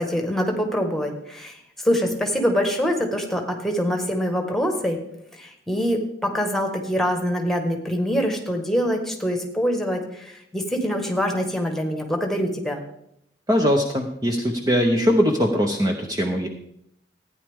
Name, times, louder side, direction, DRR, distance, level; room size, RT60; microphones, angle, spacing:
voice 1, 0.0-5.0 5.3-12.8, equal, ahead, 3 dB, 1.5 m, -24 dB
voice 2, 13.5-16.5, equal, 20° right, 3 dB, 0.8 m, -21 dB
15.0 x 9.7 x 3.6 m, 0.75 s
head